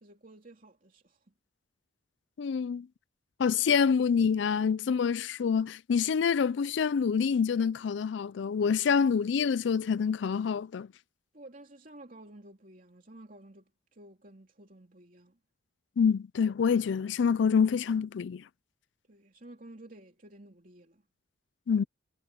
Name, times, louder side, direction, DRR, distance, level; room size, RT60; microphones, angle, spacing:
voice 1, 0.0-1.2 11.3-15.4 19.1-21.0, right 1 dB, 45° right, 3.1 m, -52 dB
voice 2, 2.4-2.9 3.4-10.9 16.0-18.4 21.7-21.8, left 6 dB, 70° left, 0.4 m, -26 dB
head